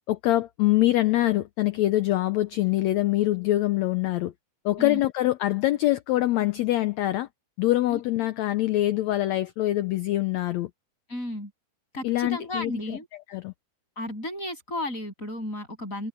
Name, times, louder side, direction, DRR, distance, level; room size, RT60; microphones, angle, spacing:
voice 1, 0.1-4.3 4.6-7.3 7.6-10.7 12.0-13.0 13.3-13.5, left 15 dB, 85° left, 1.5 m, -24 dB
voice 2, 11.1-11.5 11.9-13.1 14.0-16.1, left 1 dB, 20° left, 8.4 m, -33 dB
omnidirectional pair, 3.9 m